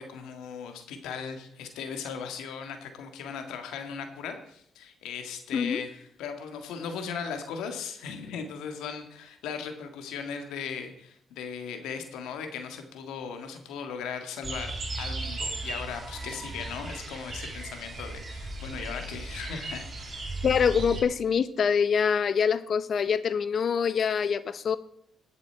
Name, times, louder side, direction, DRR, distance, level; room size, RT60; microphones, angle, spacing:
voice 1, 0.0-20.3, left 6 dB, 85° left, 6 dB, 1.7 m, -38 dB
sound 1, 14.4-21.0, right 2 dB, 40° right, 2.7 m, -36 dB
voice 2, 20.4-24.8, left 6 dB, 55° left, 15 dB, 0.7 m, -25 dB
19.0 x 6.9 x 4.5 m, 0.69 s
supercardioid pair, 65°, 0 cm